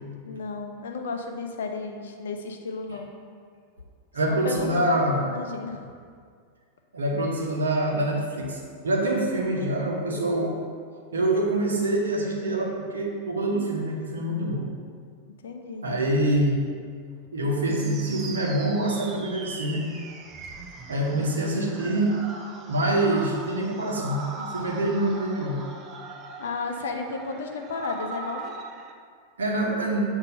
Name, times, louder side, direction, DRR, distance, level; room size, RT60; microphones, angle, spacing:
voice 1, 0.3-3.1 4.3-5.9 15.4-15.8 26.4-28.6, left 4 dB, 60° left, 4 dB, 0.6 m, -33 dB
voice 2, 4.1-5.3 6.9-10.5 11.1-14.7 15.8-16.6 17.3-19.8 20.9-22.1 22.7-25.6 29.4-30.0, right 1 dB, 70° right, -1 dB, 0.9 m, -25 dB
sound 1, 17.7-28.9, right 3 dB, 30° right, 0.5 m, -40 dB
6.7 x 2.7 x 5.2 m, 2.1 s
figure-of-eight pair, 90°, 0 cm